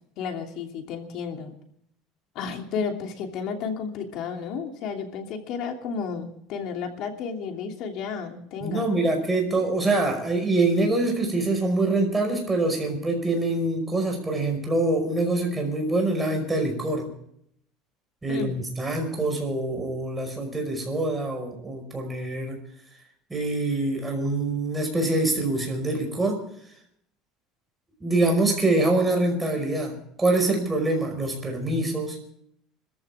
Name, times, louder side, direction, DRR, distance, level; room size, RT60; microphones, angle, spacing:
voice 1, 0.2-1.5 2.3-8.9 18.3-18.5, left 6 dB, 55° left, 3 dB, 2.9 m, -32 dB
voice 2, 8.6-17.1 18.2-22.6 23.3-26.4 28.0-32.2, right 2 dB, 10° right, 2 dB, 5.4 m, -25 dB
25.5 x 14.5 x 3.6 m, 0.69 s
cardioid pair, 150°, 0 cm